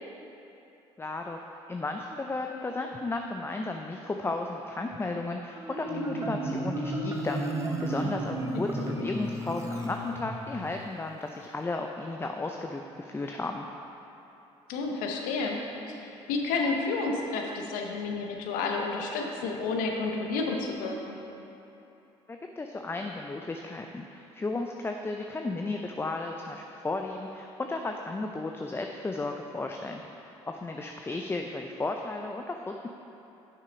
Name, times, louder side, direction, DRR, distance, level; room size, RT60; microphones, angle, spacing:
voice 1, 1.0-1.4 1.7-13.6 22.3-32.9, left 2 dB, 15° left, 3 dB, 0.5 m, -34 dB
Marimba xylophone, 5.5-10.6, right 1 dB, 20° right, 1.0 m, -33 dB
voice 2, 8.5-9.1 14.7-21.2, left 3 dB, 75° left, 1 dB, 0.9 m, -31 dB
6.6 x 5.6 x 5.2 m, 3.0 s
hypercardioid pair, 60°, 14 cm